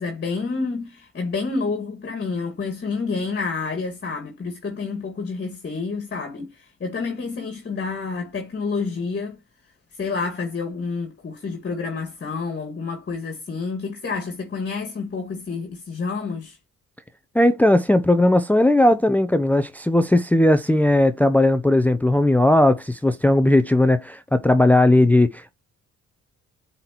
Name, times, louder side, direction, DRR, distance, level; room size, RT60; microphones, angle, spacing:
voice 1, 0.0-9.4 9.9-16.6, left 4 dB, 35° left, 1.9 m, -29 dB
voice 2, 17.3-25.5, left 1 dB, 5° left, 0.6 m, -17 dB
7.6 x 4.2 x 2.9 m
cardioid pair, 90°, 30 cm